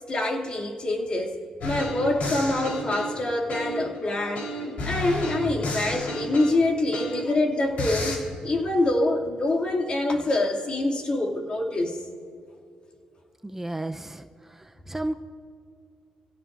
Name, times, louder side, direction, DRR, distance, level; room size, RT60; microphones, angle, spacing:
voice 1, 0.1-1.3 1.6-4.5 4.8-12.0, left 2 dB, 40° left, 1 dB, 2.6 m, -25 dB
sound 1, 1.6-4.0 4.3-7.4 7.8-8.2, left 1 dB, 70° left, 4.1 m, -31 dB
voice 2, 13.4-14.3 14.9-15.1, right 1 dB, 15° right, 6 dB, 0.7 m, -31 dB
26.0 x 16.5 x 2.6 m, 2.4 s
cardioid pair, 80°, 2 cm